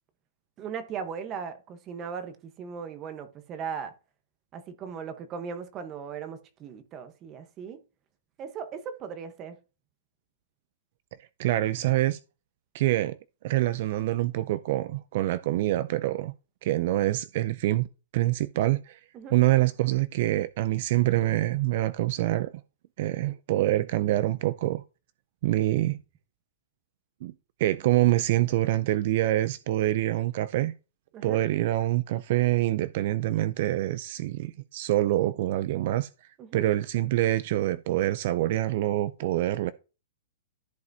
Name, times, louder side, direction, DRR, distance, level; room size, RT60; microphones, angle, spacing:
voice 1, 0.6-3.9 4.5-7.8 8.4-9.6 19.1-19.4 31.1-31.4 36.4-36.7, right 6 dB, 25° right, 1.0 m, -38 dB
voice 2, 11.4-12.2 12.7-13.2 13.4-16.3 16.6-17.9 18.1-19.0 19.3-22.5 23.0-24.8 25.4-26.0 27.2-27.3 27.6-30.7 31.2-36.1 36.5-39.7, right 15 dB, 50° right, 0.4 m, -25 dB
14.0 x 4.8 x 2.7 m
hypercardioid pair, 145°, 0 cm